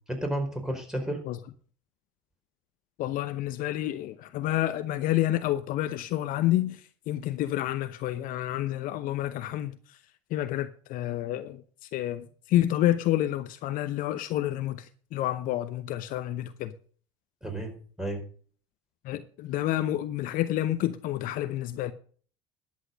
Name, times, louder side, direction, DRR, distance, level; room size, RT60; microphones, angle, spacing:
voice 1, 0.1-1.2 17.4-18.3, right 1 dB, 5° right, 4.6 m, -32 dB
voice 2, 3.0-9.7 10.3-16.7 19.0-21.9, left 13 dB, 55° left, 0.8 m, -29 dB
11.5 x 8.3 x 5.3 m
hypercardioid pair, 70°, 17 cm